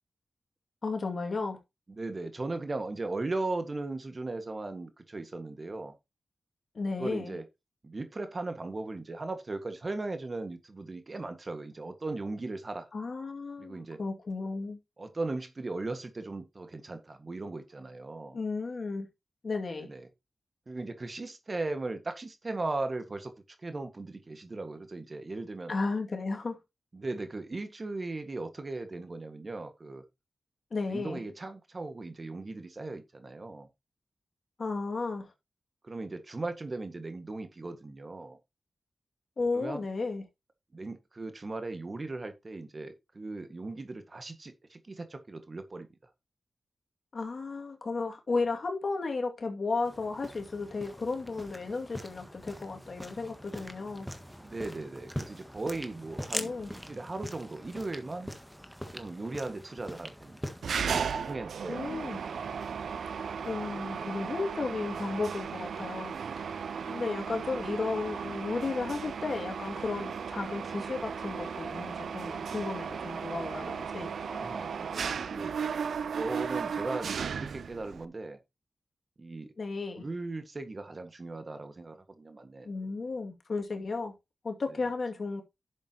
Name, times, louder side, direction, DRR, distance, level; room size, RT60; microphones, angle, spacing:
voice 1, 0.8-1.6 6.7-7.4 12.9-14.8 18.3-19.1 19.4-19.9 25.7-26.6 30.7-31.2 34.6-35.3 39.4-40.2 47.1-54.1 56.3-56.7 61.7-62.2 63.4-66.5 66.9-74.1 79.6-80.0 82.6-84.1 84.4-85.4, left 3 dB, 60° left, 2.3 m, -34 dB
voice 2, 1.9-5.9 7.0-7.4 7.8-12.9 13.6-14.0 15.0-18.4 19.8-20.0 20.7-23.3 23.6-25.7 26.9-30.0 30.9-33.7 35.8-38.4 39.5-39.8 40.7-45.9 54.4-58.3 58.9-60.4 60.7-61.9 66.8-67.0 74.3-75.6 76.1-78.4 79.2-79.5 80.0-82.7, right 2 dB, 40° right, 1.7 m, -38 dB
sound 1, 49.8-61.3, equal, ahead, 1.6 m, -43 dB
Mechanisms, 60.6-78.1, right 6 dB, 85° right, 0.5 m, -35 dB
11.0 x 7.2 x 2.9 m
cardioid pair, 65°, 0 cm